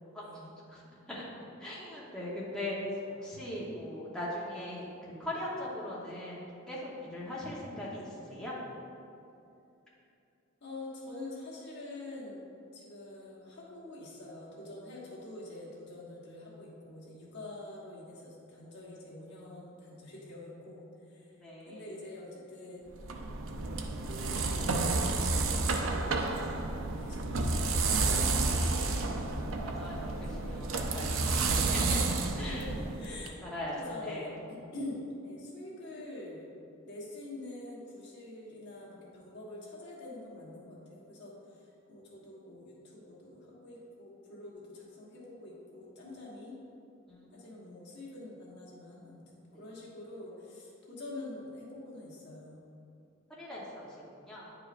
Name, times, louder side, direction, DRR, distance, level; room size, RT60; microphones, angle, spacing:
voice 1, 0.2-0.5 10.6-12.4 12.7-22.8 23.5-30.0 30.3-30.8 31.8-36.5 36.8-46.5 47.3-52.6, left 2 dB, 55° left, -5 dB, 1.4 m, -46 dB
voice 2, 1.6-2.8 3.2-8.0 8.3-8.5 21.4-21.8 29.6-30.1 30.4-30.7 30.9-32.0 32.3-32.6 33.4-33.7 34.0-34.2 47.1-47.4 53.4-53.9 54.3-54.5, left 1 dB, 5° left, -8 dB, 0.9 m, -39 dB
sound 1, 22.9-33.3, right 3 dB, 75° right, 0.5 m, -30 dB
9.4 x 4.9 x 2.5 m, 2.7 s
head